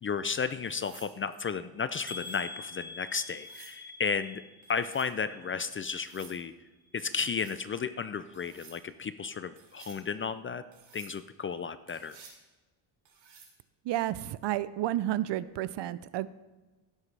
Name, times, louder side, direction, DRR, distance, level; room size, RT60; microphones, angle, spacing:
voice 1, 0.0-4.4 4.7-6.5 6.9-10.6 10.9-12.2, left 6 dB, 30° left, 13 dB, 0.3 m, -33 dB
sound 1, 0.7-1.1 2.0-2.5 3.3-3.8 4.6-5.1 5.9-6.4 7.1-7.6 8.3-8.8 9.6-10.0 10.7-11.1 11.9-12.4 13.0-13.5 15.5-15.7, right 5 dB, 80° right, 3.2 m, -54 dB
sound 2, 2.1-6.0 6.3-7.0 7.4-7.5 7.9-8.0, left 3 dB, 5° right, 1.6 m, -46 dB
voice 2, 13.9-16.3, right 13 dB, 60° right, 17 dB, 0.6 m, -31 dB
16.5 x 7.4 x 3.3 m, 1.2 s
cardioid pair, 105°, 47 cm